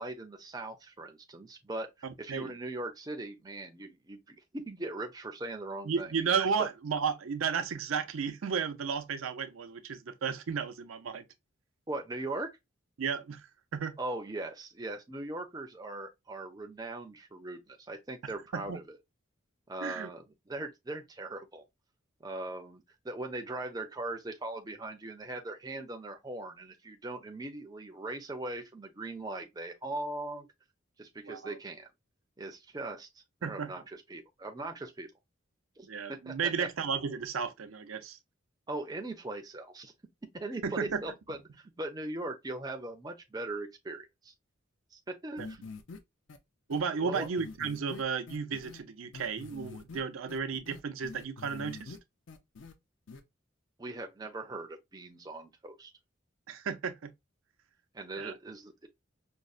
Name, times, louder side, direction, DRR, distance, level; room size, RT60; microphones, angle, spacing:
voice 1, 0.0-6.1 11.9-12.6 14.0-18.8 19.7-21.6 22.2-30.5 31.0-31.9 32.4-35.1 35.8-36.7 38.7-39.9 40.3-44.3 44.9-45.6 47.0-47.3 53.8-55.9 57.9-58.9, right 2 dB, 20° right, 0.5 m, -40 dB
voice 2, 2.0-2.5 5.8-11.2 13.0-14.0 18.5-18.8 19.8-20.1 31.2-31.6 33.4-33.7 35.9-38.2 40.6-41.0 46.7-52.0 56.5-57.1 58.1-58.3, right 6 dB, 90° right, 0.5 m, -33 dB
sound 1, 45.4-46.0 46.3-46.4 46.7-46.8 47.1-48.8 49.1-50.0 50.3-52.0 52.3-52.7 53.1-53.2, left 4 dB, 70° left, 0.5 m, -45 dB
5.2 x 2.0 x 2.3 m
head